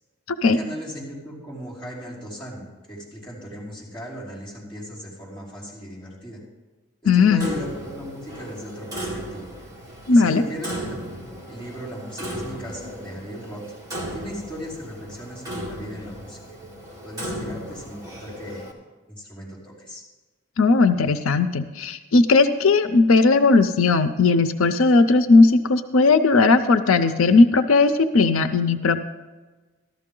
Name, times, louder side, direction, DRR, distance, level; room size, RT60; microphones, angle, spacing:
voice 1, 0.4-6.4 7.0-9.5 10.1-11.0 11.5-13.6 14.1-16.6 17.0-18.7 19.1-20.0, equal, 5° left, -11 dB, 4.9 m, -37 dB
voice 2, 7.1-7.5 10.1-10.4 20.6-29.0, left 3 dB, 90° left, 11 dB, 0.6 m, -17 dB
Clock, 7.4-18.7, equal, 20° right, 1.8 m, -36 dB
14.0 x 12.5 x 3.8 m, 1.2 s
head